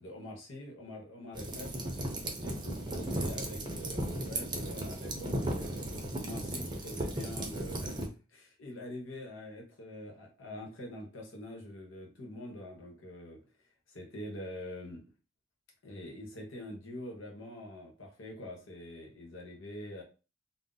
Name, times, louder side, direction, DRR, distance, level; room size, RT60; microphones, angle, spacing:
voice 1, 0.0-1.8 2.4-13.4 13.9-15.1 15.8-20.0, left 1 dB, 90° left, 0 dB, 1.0 m, -45 dB
sound 1, 1.3-8.1, right 1 dB, 25° right, 0.5 m, -36 dB
2.6 x 2.0 x 3.8 m, 0.34 s
head